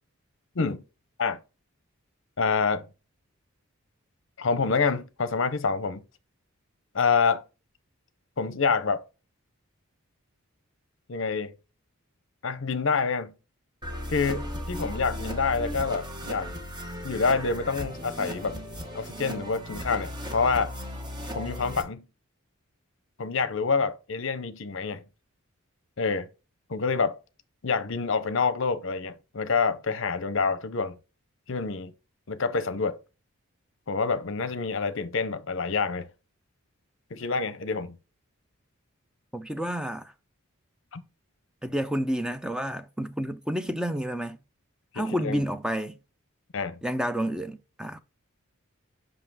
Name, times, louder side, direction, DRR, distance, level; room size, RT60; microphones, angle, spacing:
voice 1, 2.4-2.9 4.4-6.0 6.9-7.4 8.4-9.0 11.1-11.5 12.4-13.3 14.1-16.5 17.0-18.6 18.9-20.7 21.3-22.1 23.2-25.0 26.0-26.3 26.7-27.2 27.6-31.0 31.5-31.9 32.3-33.0 33.9-36.1 37.1-38.0 40.9-41.0 44.9-45.4 46.5-46.8, left 4 dB, 60° left, 0.7 m, -27 dB
sound 1, 13.8-21.8, equal, 20° right, 1.0 m, -36 dB
voice 2, 39.3-40.1 41.6-44.4 45.0-46.0 46.8-48.0, equal, 5° right, 0.4 m, -30 dB
5.7 x 5.6 x 4.6 m
head